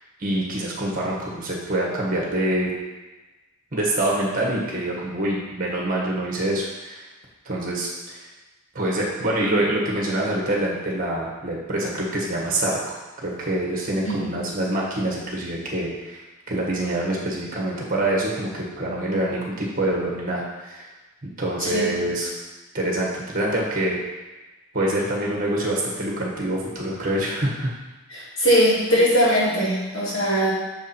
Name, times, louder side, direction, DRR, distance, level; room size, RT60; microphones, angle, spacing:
voice 1, 0.2-2.7 3.7-7.0 7.4-8.3 8.7-20.9 21.2-22.3 22.7-24.0 24.7-27.7, right 1 dB, 40° right, -3 dB, 1.5 m, -25 dB
voice 2, 21.6-21.9 28.1-30.5, equal, 55° left, -8 dB, 2.5 m, -20 dB
6.6 x 4.9 x 4.4 m, 1.2 s
head